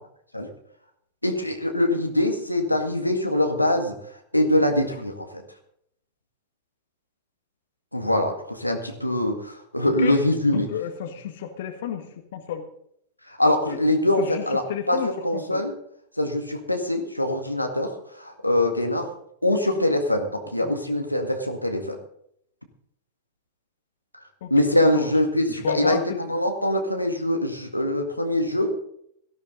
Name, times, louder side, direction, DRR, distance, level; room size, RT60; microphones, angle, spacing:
voice 1, 1.2-5.4 7.9-10.7 13.3-15.0 15.2-15.7 16.2-19.1 19.4-22.0 24.1-28.7, left 1 dB, 90° left, 4 dB, 2.0 m, -23 dB
voice 2, 10.5-12.1 12.3-12.6 13.7-13.8 14.2-14.4 14.7-15.6 20.6-20.7 24.4-24.5 24.9-25.1 25.6-26.2, left 7 dB, 55° left, 7 dB, 1.7 m, -31 dB
17.5 x 14.0 x 3.9 m, 0.70 s
figure-of-eight pair, 90°, 0 cm